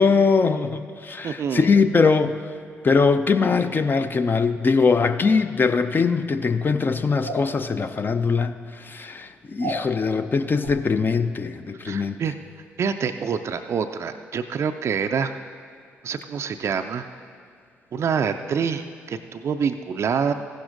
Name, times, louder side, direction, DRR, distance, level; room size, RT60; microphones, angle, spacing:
voice 1, 0.0-2.4 2.8-8.6 8.8-12.2, left 4 dB, 30° left, 8 dB, 0.5 m, -21 dB
voice 2, 1.2-1.7 11.9-12.3 12.8-15.4 16.0-17.1 17.9-20.3, right 6 dB, 45° right, 7 dB, 0.4 m, -26 dB
sound 1, 7.2-7.5 9.6-9.8 10.6-10.8, right 1 dB, 85° right, 0.6 m, -30 dB
15.0 x 11.5 x 2.6 m, 2.3 s
figure-of-eight pair, 40°, 6 cm